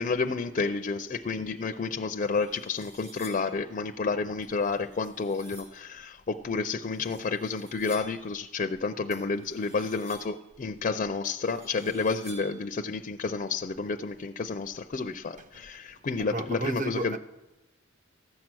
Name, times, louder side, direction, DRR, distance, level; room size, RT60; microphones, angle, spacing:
voice 1, 0.0-17.2, left 4 dB, 40° left, 0.4 m, -30 dB
sound 1, 2.2-3.6 4.4-5.8 6.8-8.3 9.1-10.5 11.2-12.7, right 1 dB, 60° right, 4.9 m, -51 dB
voice 2, 16.2-17.2, right 2 dB, 40° right, 0.7 m, -33 dB
14.5 x 7.4 x 6.1 m
head